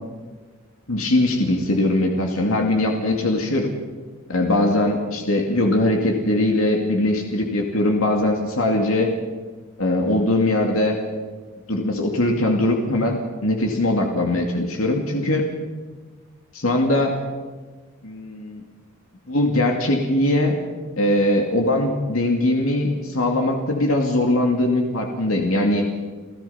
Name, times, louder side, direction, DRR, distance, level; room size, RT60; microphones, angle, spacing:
voice 1, 0.9-3.7 4.3-9.1 9.8-11.0 11.7-15.4 16.5-17.2 18.0-18.6 19.3-20.6 21.0-25.9, left 1 dB, 85° left, 2 dB, 2.4 m, -21 dB
29.5 x 15.5 x 5.8 m, 1.4 s
head